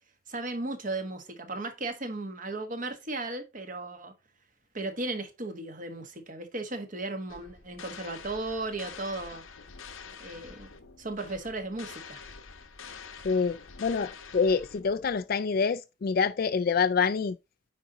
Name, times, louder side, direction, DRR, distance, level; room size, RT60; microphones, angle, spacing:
voice 1, 0.3-4.1 4.7-9.4 10.2-10.7 11.0-12.2, right 2 dB, 40° right, 1.3 m, -35 dB
sound 1, 7.3-15.2, left 5 dB, 85° left, 1.0 m, -47 dB
voice 2, 13.2-17.4, left 5 dB, 45° left, 0.3 m, -26 dB
9.5 x 4.1 x 3.9 m
head